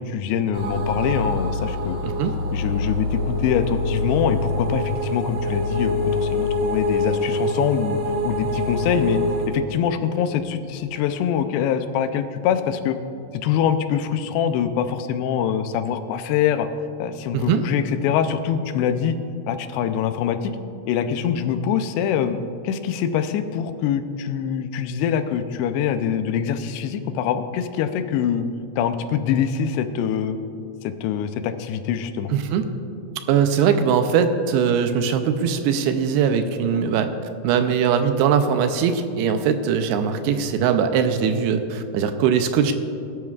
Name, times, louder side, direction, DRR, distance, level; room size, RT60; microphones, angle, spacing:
voice 1, 0.0-2.0 2.5-8.0 8.2-9.2 9.5-13.0 13.4-16.7 17.0-19.2 19.5-20.5 20.9-22.4 22.6-28.5 28.8-30.4 30.8-32.3, left 8 dB, 85° left, 9 dB, 2.7 m, -24 dB
sound 1, 0.5-9.5, left 2 dB, 60° right, 1.4 m, -25 dB
voice 2, 2.0-2.3 17.3-17.7 32.3-32.7 33.3-37.1 37.4-42.7, right 7 dB, 80° right, 8 dB, 2.6 m, -21 dB
20.0 x 12.0 x 2.4 m, 2.6 s
omnidirectional pair, 4.8 m